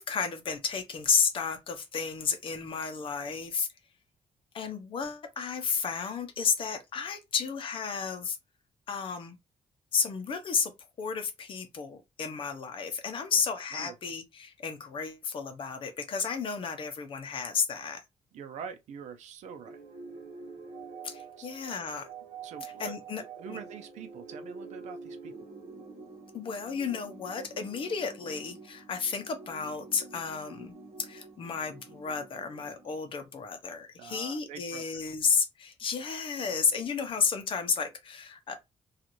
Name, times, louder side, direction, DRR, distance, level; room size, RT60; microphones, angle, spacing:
voice 1, 0.0-3.7 4.5-8.4 8.9-9.4 9.9-10.7 11.0-18.0 21.0-22.1 22.6-23.2 23.5-23.6 26.3-30.7 31.0-38.6, left 6 dB, 45° left, 0.6 m, -32 dB
voice 2, 18.3-19.8 21.4-21.5 22.4-22.9 23.4-25.3 34.0-35.0, right 7 dB, 80° right, 0.5 m, -44 dB
sound 1, 19.7-33.4, right 4 dB, 50° right, 1.0 m, -47 dB
2.5 x 2.4 x 2.9 m
cardioid pair, 145°, 12 cm